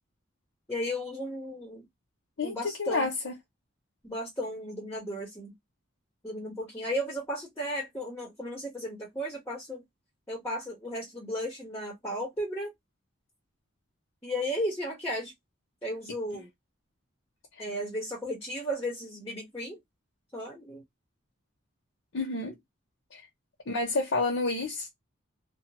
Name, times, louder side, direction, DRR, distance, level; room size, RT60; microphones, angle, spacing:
voice 1, 0.7-1.9 2.4-3.1 4.0-5.5 6.2-9.8 10.3-12.7 14.2-15.3 15.8-16.5 17.6-19.8 20.3-20.8, equal, 10° left, 1.0 m, -34 dB
voice 2, 2.4-3.3 22.1-22.6 23.1-23.2 23.7-24.9, left 3 dB, 70° left, 0.7 m, -29 dB
2.5 x 2.2 x 2.8 m
head